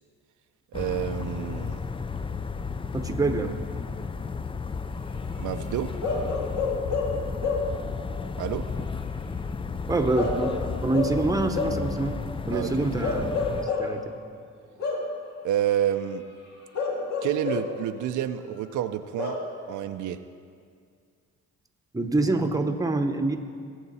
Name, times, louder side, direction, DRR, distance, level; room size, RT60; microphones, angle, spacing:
sound 1, 0.7-13.7, left 5 dB, 20° left, 0.4 m, -33 dB
voice 1, 0.7-1.8 5.4-5.9 8.4-8.6 12.5-12.9 15.4-16.2 17.2-19.4 19.7-20.2, right 11 dB, 75° right, 8 dB, 0.6 m, -29 dB
voice 2, 2.9-3.6 9.9-10.5 10.8-12.2 12.5-14.0 21.9-23.4, right 2 dB, 10° right, 6 dB, 0.9 m, -26 dB
Bark / Livestock farm animals working animals, 6.0-7.8 10.1-11.9 13.0-14.0 14.8-15.2 16.7-17.8 19.2-19.6, left 3 dB, 65° left, 2.0 m, -29 dB
19.0 x 8.0 x 4.1 m, 2.2 s
cardioid pair, 90°, 30 cm